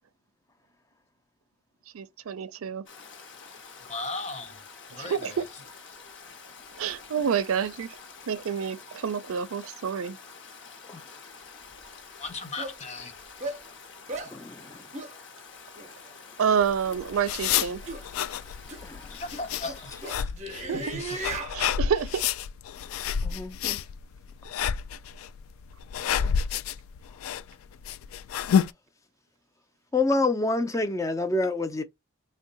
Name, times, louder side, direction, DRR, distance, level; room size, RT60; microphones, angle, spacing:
voice 1, 1.9-2.8 4.9-5.4 6.8-8.0 8.3-10.2 16.4-17.8 20.7-20.8 21.5-22.2, right 7 dB, 85° right, 0.4 m, -28 dB
Stream, 2.9-20.1, left 5 dB, 60° left, 0.9 m, -48 dB
voice 2, 3.8-4.6 4.9-5.4 12.2-13.2 19.1-20.2 20.5-21.2, left 3 dB, 30° left, 0.8 m, -37 dB
sound 1, 11.8-11.9 12.6-12.8 13.4-13.6 14.1-14.3 14.9-15.1 15.8-15.9 16.8-17.1 17.9-18.0 18.7-18.8 19.3-21.6, right 2 dB, 35° right, 0.6 m, -36 dB
voice 3, 14.3-14.8 18.8-19.2 19.6-19.7 23.2-23.8 26.2-26.4 29.9-31.8, left 2 dB, 15° left, 0.4 m, -28 dB
sound 2, 16.6-28.7, left 8 dB, 85° left, 0.3 m, -30 dB
3.6 x 2.2 x 3.8 m
head